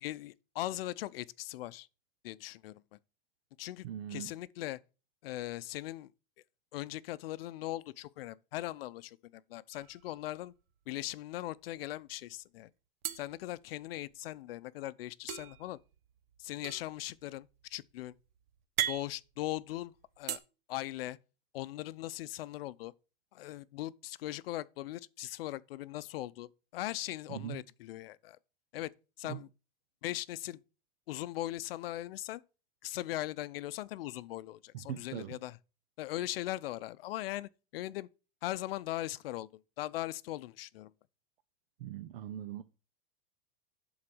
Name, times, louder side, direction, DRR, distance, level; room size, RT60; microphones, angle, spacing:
voice 1, 0.0-1.9 2.2-2.8 3.6-4.8 5.2-6.1 6.7-10.5 10.9-12.7 13.2-15.8 16.4-18.1 18.9-20.4 20.7-21.2 21.5-22.9 23.3-28.4 28.7-28.9 29.2-29.5 30.0-30.6 31.1-32.4 32.8-35.6 36.0-38.1 38.4-39.5 39.8-40.9, left 15 dB, 75° left, 0.6 m, -39 dB
voice 2, 3.8-4.3 27.3-27.6 29.3-29.4 34.7-35.4 41.8-42.6, right 11 dB, 75° right, 0.8 m, -41 dB
sound 1, 9.7-10.6 10.9-11.1 11.4-12.1 13.0-14.3 15.3-20.4, right 11 dB, 50° right, 1.0 m, -40 dB
11.0 x 4.0 x 6.1 m
supercardioid pair, 160°, 29 cm